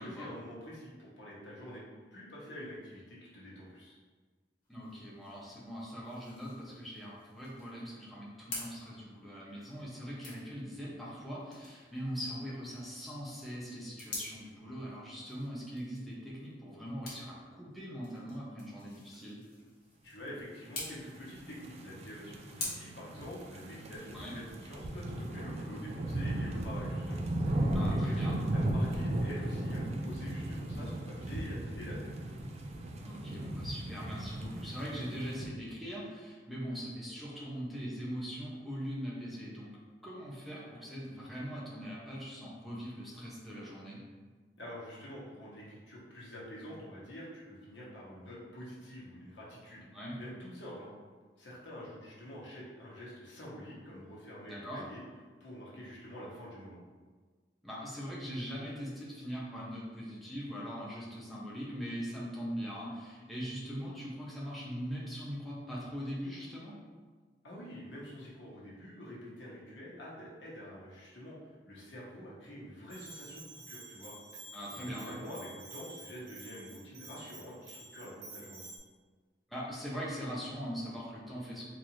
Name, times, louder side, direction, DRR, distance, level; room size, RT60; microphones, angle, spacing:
voice 1, 0.0-1.8 2.1-4.0 20.0-28.2 28.5-32.1 44.6-49.9 50.1-50.9 51.4-55.0 55.4-56.8 67.4-71.3 71.7-74.1 74.7-78.6, equal, 75° left, -6 dB, 1.1 m, -47 dB
sound 1, 4.6-22.7, left 2 dB, 55° left, 1.1 m, -49 dB
voice 2, 4.7-19.4 24.1-24.3 27.7-28.3 33.0-39.7 40.0-44.0 49.9-50.1 54.5-54.8 57.6-66.8 74.5-75.2 79.5-81.7, equal, ahead, -7 dB, 0.7 m, -41 dB
sound 2, 21.2-35.5, right 1 dB, 35° right, 0.3 m, -36 dB
Bell, 72.9-78.8, right 2 dB, 85° right, 0.9 m, -50 dB
3.9 x 2.6 x 3.0 m, 1.4 s
head